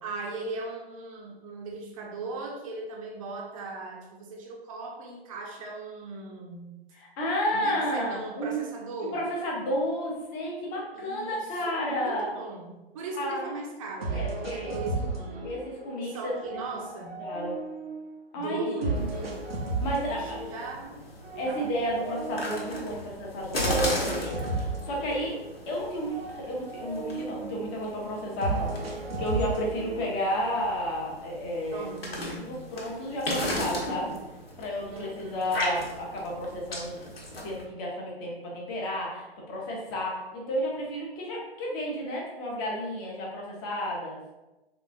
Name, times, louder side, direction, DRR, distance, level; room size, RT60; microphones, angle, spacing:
voice 1, 0.0-6.8 7.5-9.2 10.9-11.5 11.9-15.5 16.0-17.3 18.3-19.3 19.9-21.0 21.3-21.9 31.7-32.5 34.9-35.5, right 3 dB, 35° right, 0 dB, 0.6 m, -38 dB
voice 2, 7.2-8.6 9.1-12.3 13.1-13.5 14.1-14.7 15.4-16.3 17.2-17.6 18.3-19.3 19.8-20.4 21.4-25.4 25.7-31.9 32.3-34.1 34.6-37.1 37.4-44.2, equal, 20° left, -2 dB, 0.7 m, -32 dB
sound 1, 14.0-16.0 16.4-18.2 18.8-20.8 21.2-23.0 23.6-25.8 26.0-27.8 28.4-30.4, right 3 dB, 75° right, 0.7 m, -34 dB
sound 2, 18.9-37.6, left 1 dB, 70° left, 1.0 m, -37 dB
3.7 x 2.4 x 2.5 m, 1.0 s
figure-of-eight pair, 115°, 31 cm